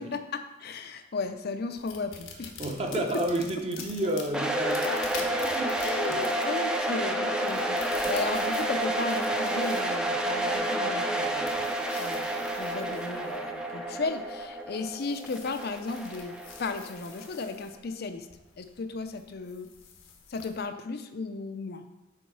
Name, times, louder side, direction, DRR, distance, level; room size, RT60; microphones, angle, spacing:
voice 1, 0.0-2.5 4.8-5.1 5.8-18.3 18.6-19.7 20.3-21.8, left 3 dB, 50° left, 8 dB, 0.5 m, -35 dB
sound 1, 1.8-20.6, left 5 dB, 85° left, 1.1 m, -48 dB
voice 2, 2.6-6.2, right 1 dB, 30° right, 3 dB, 0.8 m, -31 dB
sound 2, 4.3-17.2, right 1 dB, 5° right, 0.5 m, -30 dB
7.0 x 4.6 x 4.7 m, 0.99 s
head